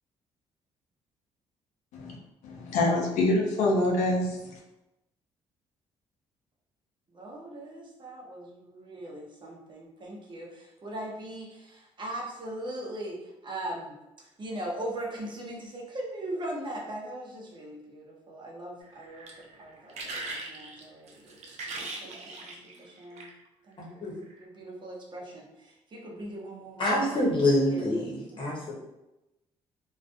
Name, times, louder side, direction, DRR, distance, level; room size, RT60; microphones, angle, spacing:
voice 1, 2.4-4.6, left 2 dB, 80° left, -1 dB, 0.5 m, -26 dB
voice 2, 7.1-22.5 22.8-23.3 23.7-24.0 24.4-27.3 27.7-28.5, right 1 dB, 40° right, -2 dB, 0.8 m, -40 dB
sound 1, 18.8-23.5 24.2-24.4, right 2 dB, 65° right, 0.5 m, -40 dB
voice 3, 26.8-28.7, left 1 dB, 45° left, -4 dB, 1.0 m, -26 dB
2.4 x 2.3 x 2.5 m, 0.94 s
supercardioid pair, 70°, 12 cm